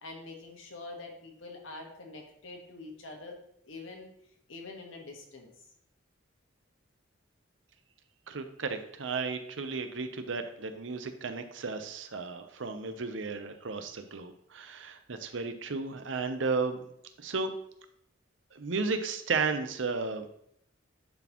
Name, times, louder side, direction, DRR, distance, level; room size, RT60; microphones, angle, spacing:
voice 1, 0.0-3.4 3.7-4.1 4.5-5.5, left 3 dB, 85° left, 1 dB, 1.5 m, -45 dB
voice 2, 8.3-16.9 17.2-17.5 18.5-20.3, right 4 dB, 70° right, 8 dB, 0.7 m, -34 dB
10.5 x 4.2 x 3.0 m, 0.72 s
head